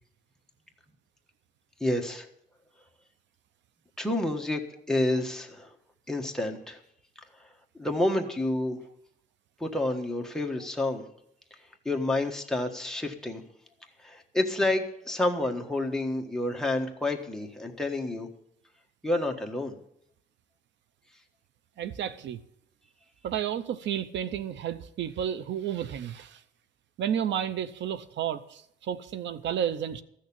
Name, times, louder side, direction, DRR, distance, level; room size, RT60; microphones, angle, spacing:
voice 1, 1.8-2.3 4.0-4.6 4.9-5.7 6.1-6.8 7.4-7.5 7.8-8.8 9.6-11.0 11.8-13.4 14.0-18.3 19.0-19.8, left 1 dB, 5° left, 1.4 m, -29 dB
voice 2, 21.8-22.4 23.2-26.4 27.0-30.0, right 9 dB, 75° right, 0.7 m, -31 dB
14.5 x 6.6 x 8.7 m
cardioid pair, 130°, 19 cm